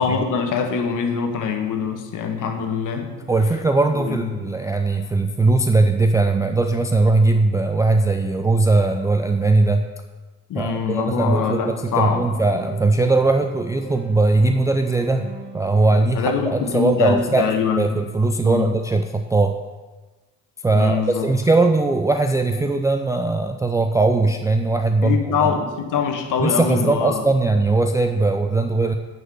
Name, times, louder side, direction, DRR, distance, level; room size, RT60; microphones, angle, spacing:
voice 1, 0.0-3.2 4.0-4.4 10.5-12.2 16.0-18.0 18.4-18.7 20.7-21.3 25.0-27.3, left 6 dB, 45° left, 5 dB, 1.4 m, -23 dB
voice 2, 3.3-9.9 10.5-15.2 15.5-17.5 17.8-19.6 20.6-25.5 26.4-28.9, right 3 dB, 10° right, 5 dB, 0.4 m, -19 dB
sound 1, 11.2-16.7, equal, 90° left, 1.5 m, -42 dB
9.3 x 5.4 x 6.4 m, 1.2 s
figure-of-eight pair, 60°, 44 cm